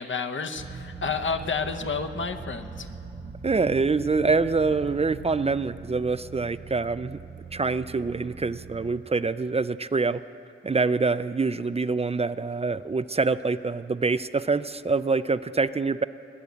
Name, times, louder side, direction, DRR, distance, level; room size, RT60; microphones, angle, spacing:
voice 1, 0.0-2.9, left 5 dB, 75° left, 8 dB, 0.9 m, -30 dB
sound 1, 0.5-8.9, right 4 dB, 60° right, 0.8 m, -41 dB
voice 2, 3.4-7.2 7.5-10.2 10.6-16.0, right 4 dB, 30° right, 14 dB, 0.4 m, -25 dB
21.0 x 8.1 x 8.4 m, 2.7 s
wide cardioid pair, 75°, 20 cm